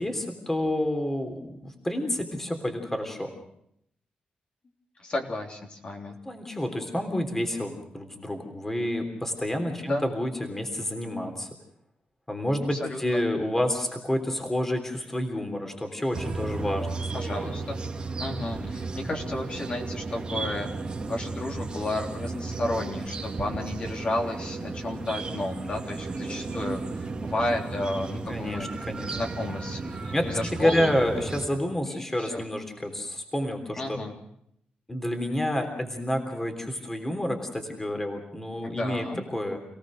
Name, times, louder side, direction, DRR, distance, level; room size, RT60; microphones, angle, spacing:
voice 1, 0.0-3.3 6.2-11.5 12.3-17.0 28.3-29.1 30.1-30.2 30.5-34.0 34.9-39.6, left 1 dB, 10° left, 4 dB, 3.4 m, -29 dB
voice 2, 5.0-6.2 9.8-10.1 12.7-13.3 17.1-17.8 18.2-20.7 21.1-28.7 29.1-31.0 31.8-32.4 33.8-34.1 38.6-39.2, left 2 dB, 40° left, 1 dB, 3.6 m, -32 dB
sound 1, 16.1-31.5, right 3 dB, 30° right, 2.4 m, -34 dB
28.0 x 18.0 x 6.5 m, 0.74 s
cardioid pair, 120°, 3 cm